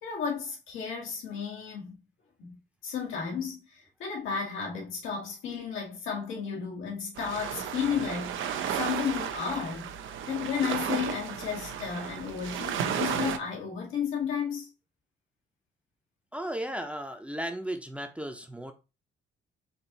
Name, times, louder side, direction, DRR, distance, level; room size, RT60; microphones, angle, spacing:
voice 1, 0.0-2.0 2.4-9.9 10.3-14.7, left 7 dB, 85° left, 2.0 m, -33 dB
sound 1, 7.2-13.4, right 8 dB, 80° right, 0.6 m, -33 dB
voice 2, 16.3-18.7, right 1 dB, 5° right, 0.7 m, -35 dB
4.5 x 2.7 x 4.0 m
cardioid pair, 90°, 20 cm